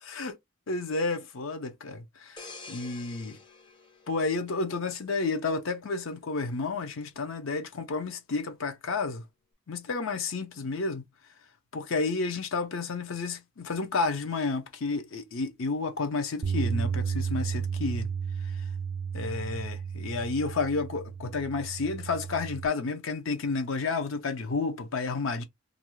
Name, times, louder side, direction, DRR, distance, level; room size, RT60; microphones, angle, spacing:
voice 1, 0.7-3.4 4.1-9.2 9.7-11.0 11.7-18.1 18.4-18.6 19.1-25.4, left 3 dB, 70° left, 0.6 m, -31 dB
sound 1, 2.4-5.0 5.5-5.7, left 3 dB, 20° left, 0.4 m, -48 dB
Bass guitar, 16.4-22.7, right 6 dB, 60° right, 0.4 m, -33 dB
2.6 x 2.2 x 3.0 m
head